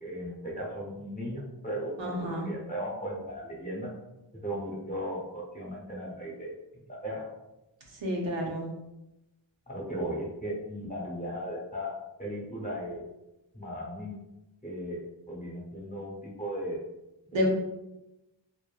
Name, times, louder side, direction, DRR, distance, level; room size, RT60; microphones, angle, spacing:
voice 1, 0.0-3.9 4.4-7.3 9.7-13.0 13.5-14.2 14.6-16.9 17.3-17.5, equal, 20° left, -3 dB, 0.8 m, -37 dB
voice 2, 2.0-2.5 8.0-8.7 17.3-17.5, left 1 dB, 80° right, -1 dB, 0.7 m, -29 dB
2.6 x 2.6 x 2.3 m, 0.95 s
wide cardioid pair, 75°, 45 cm